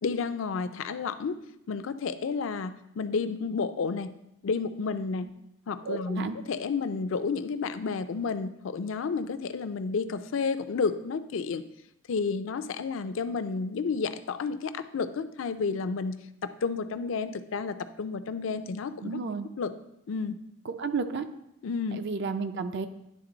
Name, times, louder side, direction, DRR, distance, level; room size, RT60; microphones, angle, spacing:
voice 1, 0.0-1.4 1.7-4.1 4.4-5.3 5.7-11.6 12.1-16.1 16.4-19.2 19.6-19.7 20.1-20.4 21.6-22.0, left 5 dB, 70° left, 11 dB, 0.4 m, -31 dB
voice 2, 5.8-6.4 19.0-19.5 20.7-21.3 22.0-22.9, right 4 dB, 55° right, 9 dB, 0.5 m, -32 dB
10.5 x 3.7 x 3.9 m, 0.83 s
head